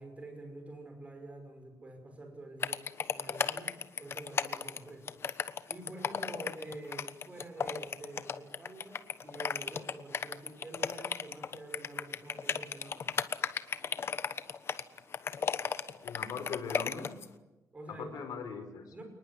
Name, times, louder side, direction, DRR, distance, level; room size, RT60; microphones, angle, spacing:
voice 1, 0.0-2.9 3.1-13.2 17.7-18.3 18.9-19.0, right 2 dB, 20° right, 5 dB, 5.7 m, -47 dB
sound 1, 2.6-17.3, left 6 dB, 40° left, 1.2 m, -34 dB
voice 2, 16.0-17.2 17.9-18.9, left 6 dB, 75° left, 7 dB, 4.7 m, -40 dB
29.0 x 20.0 x 9.7 m, 1.1 s
wide cardioid pair, 160°, 6 cm